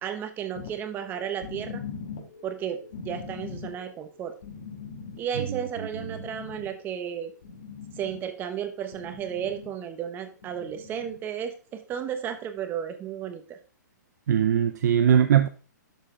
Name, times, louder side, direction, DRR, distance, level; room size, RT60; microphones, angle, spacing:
voice 1, 0.0-1.8 2.4-4.3 5.2-7.3 7.9-13.6, right 8 dB, 20° right, 1.1 m, -33 dB
sound 1, 0.5-8.4 8.7-9.7 10.4-11.2 11.9-12.0, left 5 dB, 60° left, 2.6 m, -41 dB
voice 2, 14.3-15.5, right 9 dB, 60° right, 0.7 m, -20 dB
12.0 x 4.4 x 3.8 m
hypercardioid pair, 145°, 10 cm